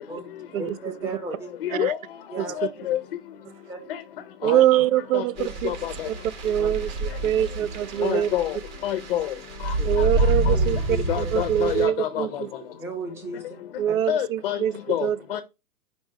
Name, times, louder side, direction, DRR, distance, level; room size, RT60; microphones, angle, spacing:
voice 1, 0.6-1.5 2.3-2.6 3.7-3.8 4.5-4.6 6.6-6.7 8.0-8.2 9.8-9.9 10.4-11.3 12.8-13.4 13.9-14.0, right 2 dB, 5° right, 0.7 m, -35 dB
voice 2, 1.6-2.0 2.6-3.0 3.9-4.0 4.4-4.6 5.1-5.2 5.6-6.1 8.0-8.6 8.8-9.3 9.6-9.7 11.1-12.4 14.1-14.6 14.9-15.4, left 11 dB, 40° left, 0.6 m, -27 dB
voice 3, 4.4-5.7 6.4-8.3 9.8-12.5 13.8-15.2, right 11 dB, 60° right, 0.6 m, -24 dB
sound 1, 5.4-11.9, right 2 dB, 30° right, 1.1 m, -28 dB
5.2 x 4.4 x 4.5 m
hypercardioid pair, 155°, 46 cm